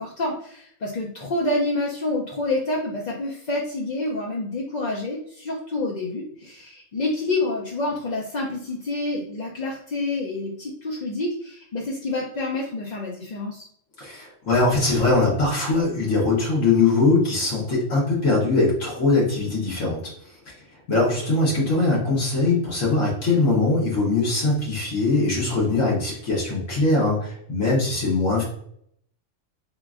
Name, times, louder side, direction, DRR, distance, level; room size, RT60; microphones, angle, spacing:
voice 1, 0.0-13.7, left 2 dB, 50° left, -3 dB, 0.5 m, -28 dB
voice 2, 14.0-20.0 20.5-20.6 20.9-28.4, left 3 dB, 85° left, -5 dB, 1.6 m, -21 dB
3.7 x 3.5 x 2.4 m, 0.67 s
omnidirectional pair, 1.3 m